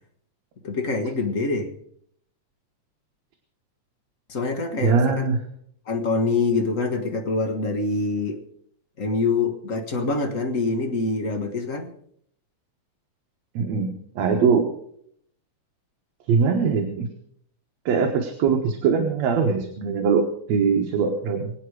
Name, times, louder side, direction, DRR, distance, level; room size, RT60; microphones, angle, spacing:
voice 1, 0.6-1.7 4.3-5.3 5.9-8.4 9.0-11.9, left 3 dB, 35° left, 5 dB, 1.3 m, -25 dB
voice 2, 4.8-5.4 13.6-13.9 14.2-14.7 16.3-17.1 17.9-21.5, right 5 dB, 70° right, 3 dB, 2.5 m, -21 dB
24.0 x 8.6 x 4.9 m, 0.67 s
omnidirectional pair, 3.3 m